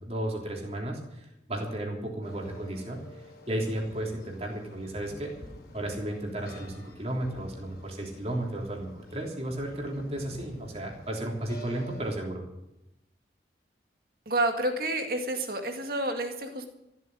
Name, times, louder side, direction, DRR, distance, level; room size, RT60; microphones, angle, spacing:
voice 1, 0.0-3.0 3.5-5.3 5.7-12.4, right 1 dB, 35° right, 0 dB, 3.4 m, -34 dB
sound 1, 2.2-12.2, equal, 55° left, 3.4 m, -49 dB
voice 2, 14.3-16.7, right 1 dB, 50° right, 5 dB, 2.1 m, -29 dB
15.0 x 8.3 x 9.9 m, 0.89 s
head